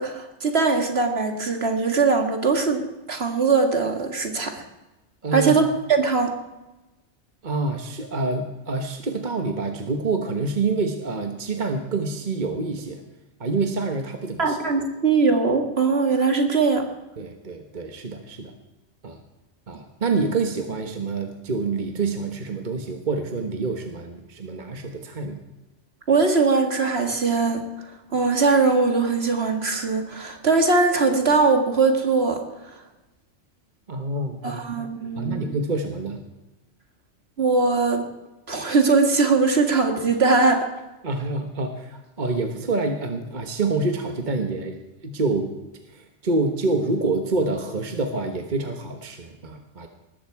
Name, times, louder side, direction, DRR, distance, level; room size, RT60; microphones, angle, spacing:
voice 1, 0.0-4.6 5.3-6.3 14.4-16.9 26.1-32.8 34.4-35.5 37.4-38.0 38.5-40.7, right 4 dB, 55° right, 4 dB, 2.1 m, -21 dB
voice 2, 5.2-5.5 7.4-13.0 13.4-14.6 17.2-18.5 19.0-19.2 19.7-25.4 33.9-34.6 35.2-36.2 41.0-45.5 45.9-49.9, right 3 dB, 40° right, 5 dB, 1.3 m, -27 dB
19.5 x 14.5 x 4.7 m, 1.0 s
omnidirectional pair, 1.3 m